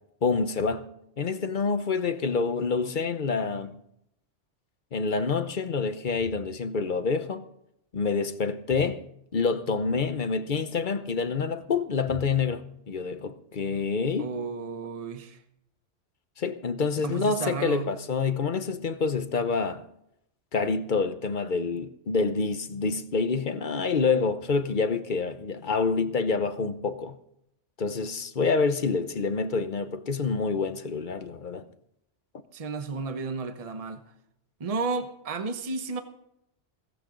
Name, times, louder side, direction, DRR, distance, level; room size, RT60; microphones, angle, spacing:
voice 1, 0.2-0.8 1.2-3.7 4.9-7.4 7.9-9.0 9.3-14.3 16.4-19.8 20.5-27.2 27.8-31.6, left 4 dB, 45° left, 1.0 m, -27 dB
voice 2, 14.2-15.4 17.0-17.9 32.5-34.0 34.6-36.0, right 4 dB, 35° right, 1.0 m, -32 dB
17.0 x 15.0 x 3.9 m
omnidirectional pair, 1.2 m